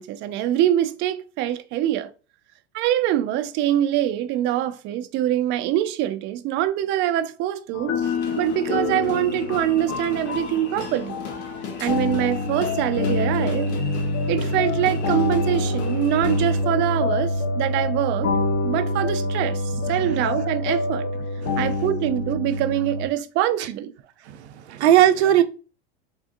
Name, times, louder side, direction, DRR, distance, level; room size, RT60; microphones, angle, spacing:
voice 1, 0.0-2.1 2.7-7.9 8.4-11.2 11.8-13.8 14.3-18.3 18.6-21.0 21.6-23.9 25.3-25.4, right 12 dB, 35° right, 0.4 m, -24 dB
sound 1, 7.7-23.1, left 2 dB, 45° left, 0.9 m, -26 dB
sound 2, 8.0-16.6, left 5 dB, 75° left, 1.0 m, -38 dB
voice 2, 24.3-25.4, right 11 dB, 85° right, 0.5 m, -18 dB
3.5 x 2.6 x 2.5 m
hypercardioid pair, 105°, 33 cm